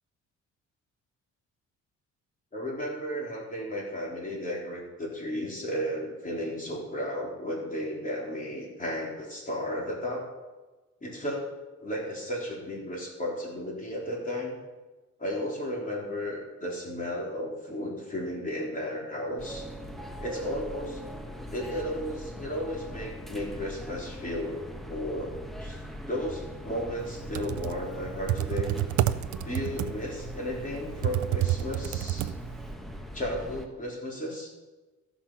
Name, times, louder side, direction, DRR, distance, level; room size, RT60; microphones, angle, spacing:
voice 1, 2.5-10.3 11.0-11.5 11.8-14.6 15.2-19.7 20.2-21.0 21.5-24.6 24.9-25.3 25.6-25.8 26.1-28.8 29.4-32.2 33.1-34.5, equal, 25° left, -3 dB, 4.1 m, -34 dB
sound 1, 19.4-33.7, equal, ahead, 1.3 m, -41 dB
Computer keyboard, 27.1-32.7, right 13 dB, 70° right, 0.6 m, -29 dB
15.0 x 6.2 x 5.8 m, 1.2 s
cardioid pair, 90°, 30 cm